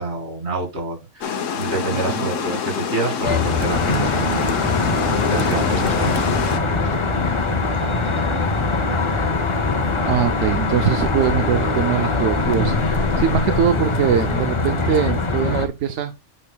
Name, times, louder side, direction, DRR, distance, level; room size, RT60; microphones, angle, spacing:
voice 1, 0.0-9.3, right 2 dB, 60° right, 2.5 m, -29 dB
Water, 1.2-6.6, left 6 dB, 85° left, 1.2 m, -26 dB
Traffic noise roadway noise, 3.2-15.7, left 3 dB, 30° left, 0.6 m, -22 dB
sound 1, 3.9-14.4, left 3 dB, 45° left, 1.0 m, -32 dB
voice 2, 10.1-16.1, right 8 dB, 75° right, 0.9 m, -22 dB
8.8 x 6.5 x 2.2 m
omnidirectional pair, 1.3 m